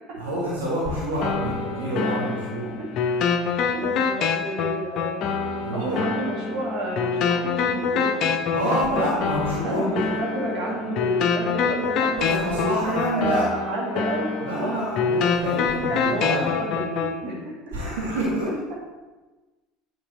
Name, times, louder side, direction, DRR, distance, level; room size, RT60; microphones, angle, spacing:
voice 1, 0.1-2.7 5.6-6.0 8.5-9.9 12.2-13.5 14.4-16.5 17.7-18.5, right 1 dB, 70° right, -6 dB, 1.5 m, -27 dB
sound 1, 1.2-17.2, left 5 dB, 50° left, 0.5 m, -26 dB
voice 2, 1.7-2.4 3.7-5.3 5.7-8.3 9.6-12.7 13.1-14.9 15.9-17.5, right 1 dB, 50° right, -3 dB, 1.7 m, -31 dB
8.7 x 3.8 x 3.1 m, 1.2 s
figure-of-eight pair, 65°, 0 cm